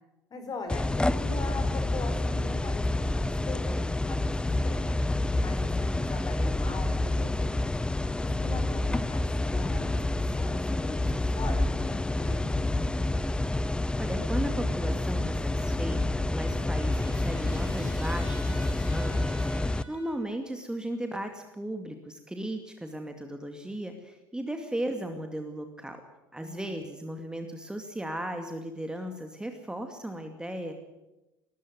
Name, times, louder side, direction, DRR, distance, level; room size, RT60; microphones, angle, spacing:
voice 1, 0.3-4.3 4.6-5.0 5.4-7.7 8.2-11.1 11.4-12.9 26.4-26.8, left 3 dB, 35° left, 6 dB, 5.1 m, -41 dB
sound 1, 0.7-19.8, left 2 dB, 10° left, 0.6 m, -28 dB
voice 2, 14.0-26.0 26.3-30.7, right 1 dB, 5° right, 5 dB, 2.4 m, -36 dB
Trumpet, 15.6-20.3, equal, 85° left, 7.3 m, -49 dB
20.0 x 14.5 x 9.7 m, 1.0 s
figure-of-eight pair, 60°, 11 cm